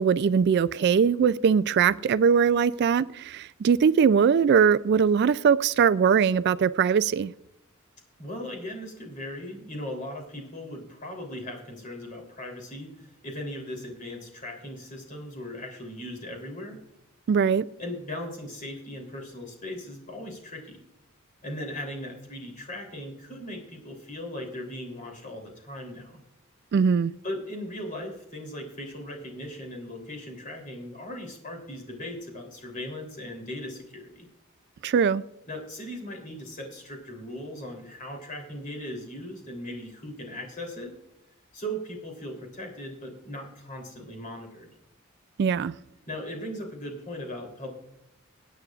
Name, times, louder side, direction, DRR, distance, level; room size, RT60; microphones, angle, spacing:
voice 1, 0.0-7.3 17.3-17.7 26.7-27.1 34.8-35.2 45.4-45.7, right 6 dB, 50° right, 0.3 m, -21 dB
voice 2, 8.2-16.8 17.8-20.8 21.4-26.2 27.2-34.3 35.5-40.9 41.5-44.7 46.1-47.7, left 1 dB, 40° left, 3.2 m, -38 dB
21.5 x 9.2 x 2.4 m
head